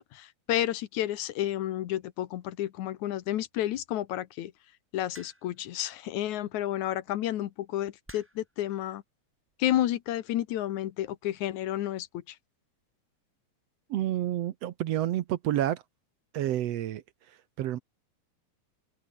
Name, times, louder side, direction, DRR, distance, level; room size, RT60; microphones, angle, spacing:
voice 1, 0.0-4.5 4.9-9.0 9.6-12.4, left 13 dB, 80° left, 2.5 m, -31 dB
sound 1, 5.1-5.7 6.9-7.1 8.1-8.5 9.5-9.8, right 1 dB, 5° right, 2.8 m, -51 dB
voice 2, 13.9-15.8 16.3-17.8, right 12 dB, 65° right, 1.8 m, -30 dB
open air
omnidirectional pair, 3.4 m